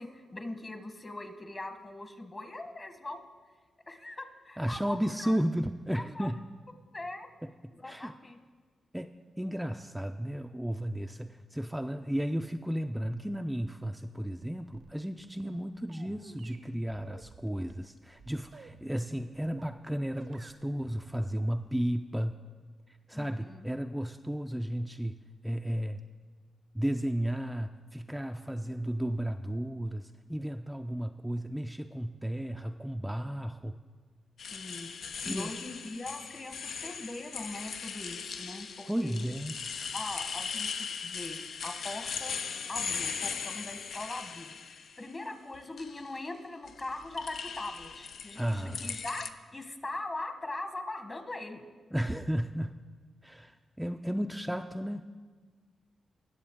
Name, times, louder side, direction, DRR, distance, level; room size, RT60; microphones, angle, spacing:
voice 1, 0.0-3.2 3.9-5.4 5.9-6.3 6.9-7.3 7.7-8.4 23.1-23.7 34.5-34.9 35.2-39.2 39.9-42.4 42.7-51.6, left 2 dB, 35° left, 7 dB, 1.2 m, -41 dB
voice 2, 4.6-6.4 7.8-8.1 8.9-22.4 23.1-26.0 26.7-33.8 35.2-35.5 38.9-39.6 48.4-49.0 51.9-52.8 53.2-55.1, equal, 5° right, 6 dB, 0.4 m, -34 dB
sound 1, 14.1-19.8 20.2-22.0, right 5 dB, 70° right, 0.7 m, -53 dB
sound 2, 34.4-45.0 45.5-46.1 46.7-49.3, left 6 dB, 75° left, 0.5 m, -39 dB
18.5 x 6.9 x 3.6 m, 1.5 s
cardioid pair, 55°, 0 cm